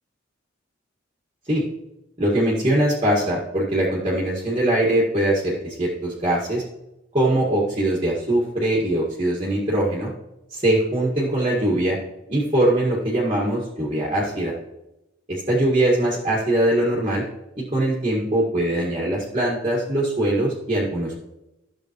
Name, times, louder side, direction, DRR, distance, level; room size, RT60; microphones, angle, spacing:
voice 1, 2.2-6.6 7.1-10.1 10.5-12.0 12.3-14.5 15.5-17.3 17.6-21.2, right 1 dB, 30° right, -4 dB, 1.8 m, -22 dB
12.5 x 7.2 x 3.1 m, 0.91 s
head